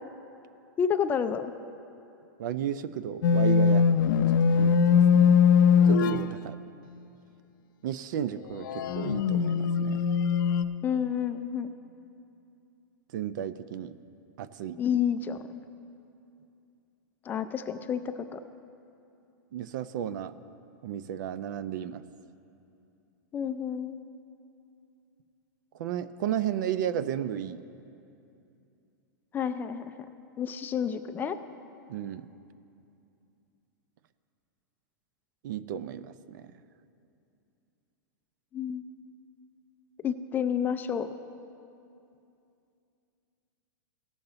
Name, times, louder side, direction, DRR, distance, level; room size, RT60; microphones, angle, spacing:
voice 1, 0.8-1.5 10.8-11.7 14.8-15.4 17.3-18.4 23.3-24.0 29.3-29.9 30.4-31.4 38.5-38.8 40.0-41.1, left 8 dB, 15° left, 9 dB, 0.3 m, -29 dB
voice 2, 2.4-3.9 4.6-5.4 5.8-6.6 7.8-10.0 13.1-14.0 14.4-14.8 19.5-20.3 20.8-22.0 25.8-27.6 31.9-32.3 35.4-36.5, right 10 dB, 65° right, 14 dB, 0.5 m, -33 dB
sound 1, 3.2-6.3 8.6-10.6, left 6 dB, 75° left, 0.5 m, -21 dB
18.0 x 7.2 x 3.9 m, 2.7 s
supercardioid pair, 145°, 11 cm